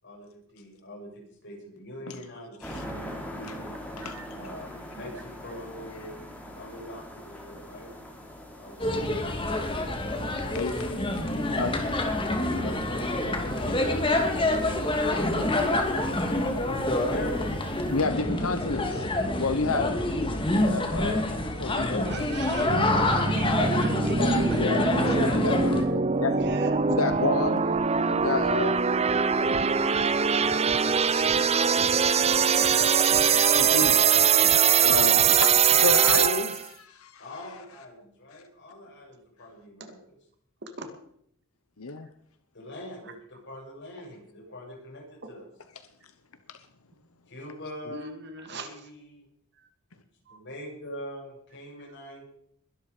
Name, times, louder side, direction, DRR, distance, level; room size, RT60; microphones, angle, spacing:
voice 1, 0.0-3.7 4.3-6.2 6.5-7.9 8.5-9.9 11.2-11.9 12.4-14.7 16.4-17.6 22.9-23.5 32.4-33.8 37.2-40.0 42.5-45.4 47.3-48.1 48.5-49.2 50.3-52.2, left 1 dB, 55° left, -1 dB, 7.7 m, -43 dB
sound 1, 2.6-18.0, equal, 5° left, 3.8 m, -44 dB
voice 2, 4.0-4.3 15.2-15.3 22.0-22.8 23.3-24.7 26.3-26.8 39.8-39.9 40.6-40.9 43.0-43.1 45.2-45.3 47.9-48.7 49.6-49.7 50.3-50.4, right 2 dB, 55° right, 7 dB, 2.4 m, -38 dB
sound 2, 8.8-25.8, left 1 dB, 25° left, 2.6 m, -27 dB
voice 3, 10.4-10.9 11.6-11.7 17.8-19.1 19.3-19.9 20.5-21.3 21.6-22.1 24.2-26.4 26.9-27.7 28.1-28.7 29.8-30.0 33.3-33.9 34.8-37.2 38.3-38.4 41.8-42.1 46.5-46.6, left 3 dB, 85° left, 10 dB, 1.1 m, -30 dB
sound 3, 22.7-36.7, right 6 dB, 30° right, 0.6 m, -22 dB
21.5 x 12.0 x 5.1 m, 0.69 s
head